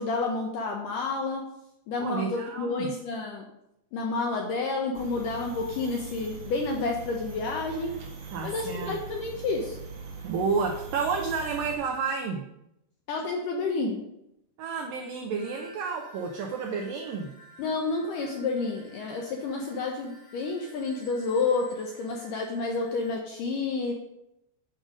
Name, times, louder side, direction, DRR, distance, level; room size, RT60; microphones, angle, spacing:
voice 1, 0.0-1.4 1.9-3.5 3.9-7.9 8.4-9.8 13.1-14.0 17.6-23.9, left 3 dB, 75° left, 1 dB, 2.0 m, -30 dB
voice 2, 2.0-2.9 8.3-9.0 10.2-12.4 14.6-17.3, right 5 dB, 80° right, 2 dB, 2.0 m, -30 dB
sound 1, 4.9-11.7, right 4 dB, 60° right, 2.8 m, -41 dB
sound 2, 15.4-23.2, right 1 dB, 40° left, 2.8 m, -53 dB
7.6 x 6.5 x 5.1 m, 0.84 s
omnidirectional pair, 4.7 m